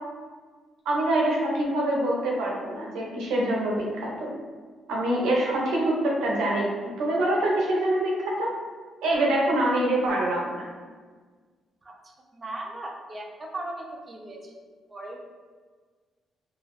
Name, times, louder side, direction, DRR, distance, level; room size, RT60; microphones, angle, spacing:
voice 1, 0.9-4.3 4.9-6.7 7.0-8.5 9.0-10.7, right 1 dB, 85° right, -3 dB, 0.6 m, -25 dB
voice 2, 11.8-14.5 14.9-15.2, right 2 dB, 30° right, 1 dB, 0.5 m, -38 dB
2.4 x 2.0 x 3.0 m, 1.5 s
cardioid pair, 90°, 0 cm